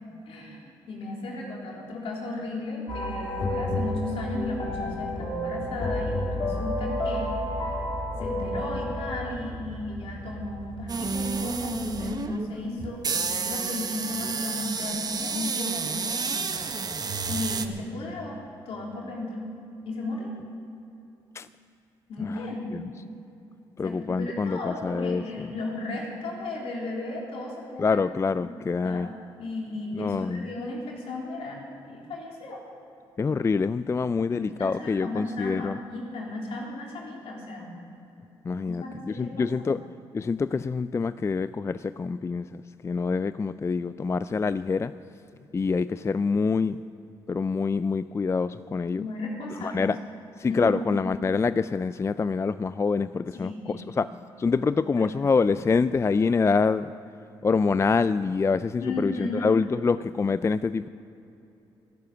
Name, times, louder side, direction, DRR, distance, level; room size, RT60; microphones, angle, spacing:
voice 1, 0.3-7.7 8.2-16.5 16.8-17.0 17.3-19.4 19.8-20.4 22.1-22.9 23.8-28.5 28.8-29.1 29.4-32.6 34.0-37.7 38.6-39.7 48.9-49.9 50.5-50.7 53.3-53.9 54.6-54.7 54.9-55.1 58.8-59.5, left 2 dB, 70° left, -2 dB, 3.6 m, -35 dB
sound 1, 2.9-9.3, left 1 dB, 45° left, 3.5 m, -30 dB
sound 2, 4.4-11.9, right 1 dB, ahead, 2.1 m, -42 dB
sound 3, 10.9-17.7, right 4 dB, 40° right, 1.1 m, -30 dB
voice 2, 23.8-25.2 27.8-29.1 30.0-30.5 33.2-35.8 38.4-39.8 40.1-44.9 45.5-46.8 47.3-49.0 49.6-50.0 50.4-54.1 54.4-56.9 57.4-60.9, left 4 dB, 25° left, 15 dB, 0.4 m, -26 dB
14.0 x 11.5 x 6.9 m, 2.9 s
supercardioid pair, 60°, 10 cm